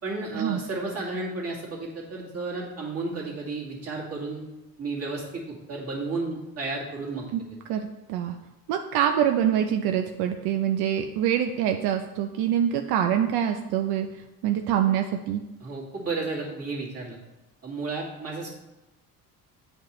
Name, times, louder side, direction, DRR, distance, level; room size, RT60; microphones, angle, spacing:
voice 1, 0.0-4.4 4.8-7.3 15.6-17.2 17.6-18.5, right 3 dB, 40° right, -4 dB, 2.1 m, -32 dB
voice 2, 7.7-8.4 8.7-15.4, right 9 dB, 80° right, 5 dB, 0.5 m, -25 dB
8.8 x 5.1 x 3.1 m, 1.0 s
cardioid pair, 115°, 37 cm